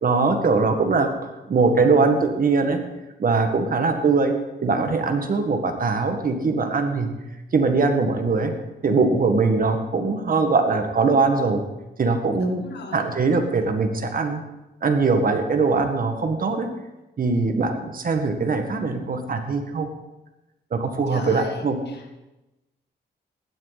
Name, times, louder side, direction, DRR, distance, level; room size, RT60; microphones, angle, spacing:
voice 1, 0.0-2.8 3.2-4.4 4.6-7.1 7.5-8.5 8.8-11.6 12.0-12.6 12.9-14.4 14.8-16.7 17.2-19.9 20.7-21.8, right 4 dB, 50° right, 5 dB, 1.8 m, -21 dB
voice 2, 12.4-13.0 21.1-22.1, left 4 dB, 70° left, 4 dB, 2.0 m, -37 dB
16.0 x 11.5 x 4.2 m, 1.0 s
cardioid pair, 95°, 18 cm